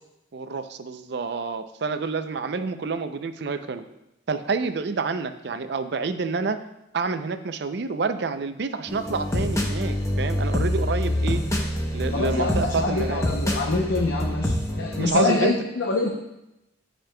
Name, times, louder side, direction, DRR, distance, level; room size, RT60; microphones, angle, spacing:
voice 1, 0.3-3.9 4.3-6.6 6.9-11.4 11.9-13.3 15.0-15.5, right 4 dB, 55° right, 10 dB, 0.5 m, -28 dB
sound 1, 8.9-15.1, equal, 15° left, 0.7 m, -26 dB
voice 2, 12.1-16.1, left 3 dB, 70° left, 0 dB, 0.7 m, -25 dB
13.5 x 5.2 x 2.2 m, 0.90 s
head